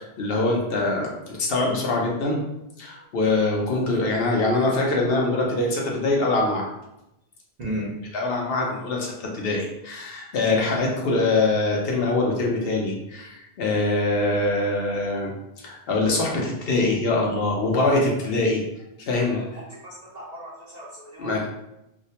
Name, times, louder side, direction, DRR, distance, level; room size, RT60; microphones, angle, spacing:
voice 1, 0.0-2.4 2.8-6.7 8.1-18.6 19.0-19.4 21.2-21.5, left 2 dB, 65° left, -1 dB, 0.8 m, -23 dB
voice 2, 7.6-7.9 19.3-19.4 19.8-21.3, right 1 dB, 55° right, -5 dB, 0.5 m, -35 dB
2.4 x 2.0 x 2.8 m, 0.86 s
omnidirectional pair, 1.1 m